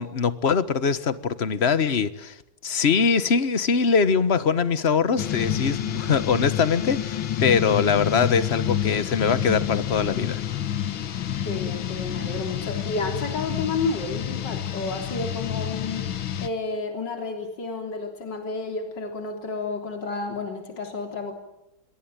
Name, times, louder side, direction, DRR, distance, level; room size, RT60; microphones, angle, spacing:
voice 1, 0.0-2.4 2.6-10.4, left 5 dB, 35° left, 13 dB, 1.4 m, -22 dB
sound 1, 5.2-16.5, left 10 dB, 75° left, 2.1 m, -29 dB
voice 2, 11.4-16.1 16.4-21.4, left 3 dB, 60° left, 3 dB, 4.1 m, -31 dB
28.0 x 23.5 x 9.1 m, 0.85 s
omnidirectional pair, 2.2 m